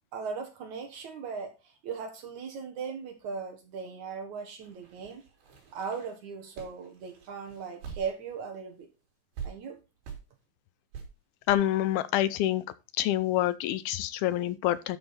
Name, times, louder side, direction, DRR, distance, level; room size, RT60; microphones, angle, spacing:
voice 1, 0.1-5.2 5.7-8.9 9.4-9.8, right 5 dB, 60° right, 2.5 m, -38 dB
sound 1, 4.6-8.4 8.7-8.8 9.4-9.5 10.0-10.2 10.9-11.1 11.5-11.6, right 7 dB, 85° right, 5.0 m, -44 dB
voice 2, 11.5-12.6 13.0-15.0, left 13 dB, 80° left, 2.5 m, -27 dB
12.0 x 5.8 x 4.2 m
omnidirectional pair, 4.5 m